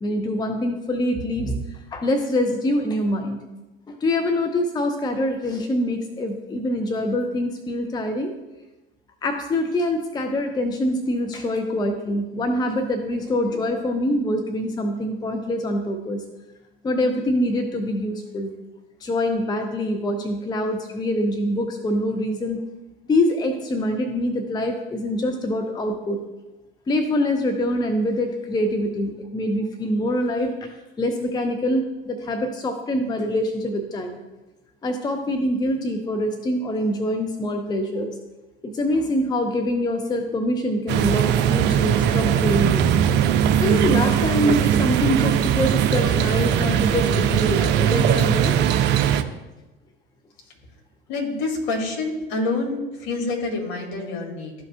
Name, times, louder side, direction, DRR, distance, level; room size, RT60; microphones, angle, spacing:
voice 1, 0.0-3.4 3.9-8.3 9.2-16.2 16.8-18.5 19.0-22.6 23.1-26.2 26.9-34.2 34.8-38.2 38.6-42.8 43.6-48.6, left 1 dB, 15° left, 6 dB, 0.6 m, -24 dB
sound 1, 40.9-49.2, right 9 dB, 35° right, 0.5 m, -20 dB
voice 2, 51.1-54.5, left 3 dB, 55° left, 0 dB, 2.2 m, -27 dB
12.5 x 4.8 x 2.3 m, 1.1 s
figure-of-eight pair, 75°, 30 cm